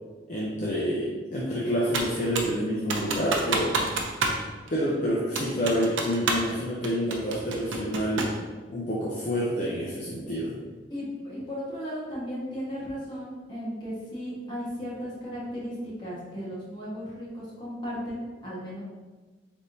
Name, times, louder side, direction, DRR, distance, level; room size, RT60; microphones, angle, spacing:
voice 1, 0.3-3.8 4.7-8.3 8.7-10.6, equal, 40° left, -6 dB, 0.5 m, -28 dB
Computer keyboard, 1.9-2.6 2.9-4.4 4.7-4.8 5.3-6.5 6.8-8.4, right 3 dB, 90° right, 0.6 m, -28 dB
voice 2, 10.9-18.8, equal, 25° left, -8 dB, 1.3 m, -35 dB
4.2 x 3.5 x 2.6 m, 1.3 s
head